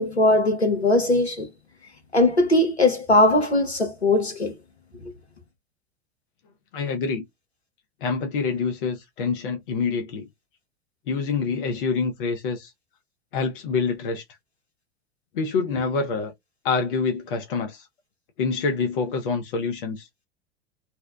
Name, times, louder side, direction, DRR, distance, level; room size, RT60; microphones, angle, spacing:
voice 1, 0.0-1.5 2.1-4.5, left 2 dB, 90° left, 0.8 m, -20 dB
voice 2, 6.7-7.2 8.0-10.3 11.1-12.7 13.3-14.2 15.3-16.3 16.6-17.9 18.4-20.1, left 5 dB, 55° left, 0.6 m, -26 dB
2.7 x 2.0 x 2.3 m
figure-of-eight pair, 90°, 32 cm